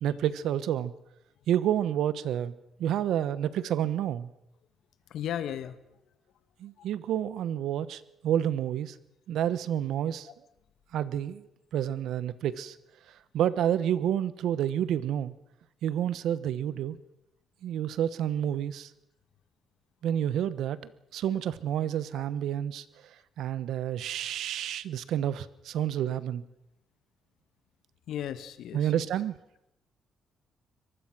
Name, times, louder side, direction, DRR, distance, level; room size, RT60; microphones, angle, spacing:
voice 1, 0.0-0.9 1.5-2.5 2.8-4.3 6.6-9.0 9.3-10.3 10.9-12.8 13.3-15.3 15.8-17.0 17.6-18.9 20.0-22.8 23.4-26.4 28.7-29.4, right 10 dB, 80° right, 16 dB, 1.1 m, -29 dB
voice 2, 5.1-5.8 6.8-6.9 22.1-22.2 28.1-28.9, left 10 dB, 75° left, 12 dB, 1.6 m, -35 dB
23.5 x 19.5 x 6.1 m, 0.85 s
cardioid pair, 90°, 0 cm